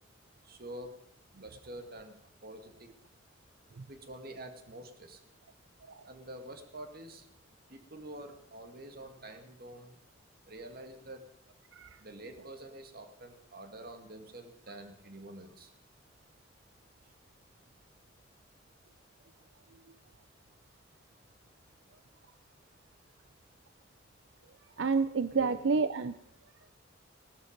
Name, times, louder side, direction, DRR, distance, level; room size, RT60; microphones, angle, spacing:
voice 1, 0.4-1.0 1.4-2.2 2.4-2.9 3.9-5.2 6.1-7.3 7.7-10.0 10.5-11.2 12.0-15.7 25.3-25.6, right 1 dB, 55° right, 6 dB, 2.2 m, -47 dB
voice 2, 24.8-26.2, right 4 dB, 85° right, 12 dB, 0.6 m, -28 dB
17.5 x 12.5 x 5.2 m, 0.73 s
head